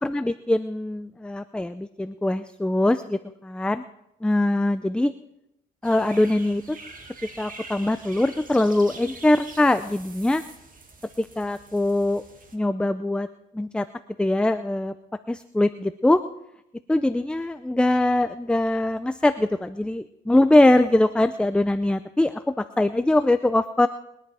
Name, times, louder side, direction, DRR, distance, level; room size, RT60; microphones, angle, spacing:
voice 1, 0.0-3.8 4.2-5.1 5.8-6.8 7.4-10.4 11.2-12.2 12.5-13.3 13.5-13.9 14.2-14.9 15.3-16.2 16.9-23.9, left 1 dB, 5° left, 11 dB, 0.5 m, -22 dB
sound 1, 5.8-12.6, right 3 dB, 45° right, 2.2 m, -45 dB
22.0 x 10.0 x 4.8 m, 0.84 s
cardioid pair, 90°, 20 cm